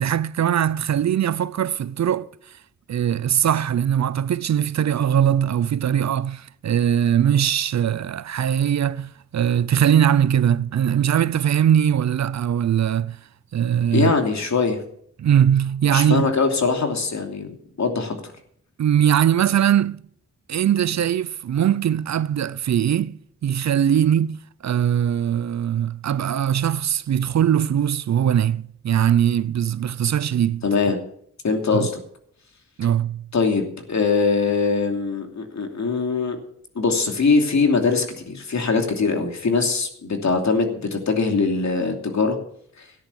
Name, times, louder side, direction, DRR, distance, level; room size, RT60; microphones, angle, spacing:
voice 1, 0.0-2.3 2.9-13.2 13.5-14.1 15.2-16.3 18.8-20.0 20.5-30.6 31.7-31.9 32.8-33.3, right 9 dB, 60° right, 0.6 m, -21 dB
voice 2, 13.9-14.8 15.9-18.1 30.6-31.0 31.4-31.9 33.3-36.4 36.7-42.4 42.8-42.9, left 4 dB, 65° left, 2.9 m, -22 dB
13.5 x 10.5 x 7.0 m
cardioid pair, 60°, 31 cm